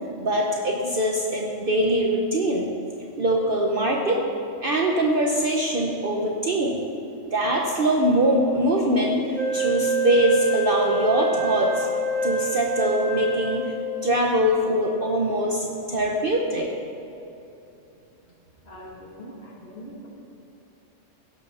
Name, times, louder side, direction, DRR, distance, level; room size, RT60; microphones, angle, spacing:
voice 1, 0.2-2.7 3.2-4.2 4.6-6.8 7.3-11.9 12.2-13.7 14.0-16.7, right 1 dB, 50° right, -1 dB, 1.1 m, -23 dB
Wind instrument woodwind instrument, 9.3-14.1, right 4 dB, 85° right, 1.8 m, -26 dB
voice 2, 18.6-20.1, equal, 50° left, -3 dB, 2.4 m, -42 dB
17.0 x 6.2 x 5.6 m, 2.8 s
omnidirectional pair, 1.3 m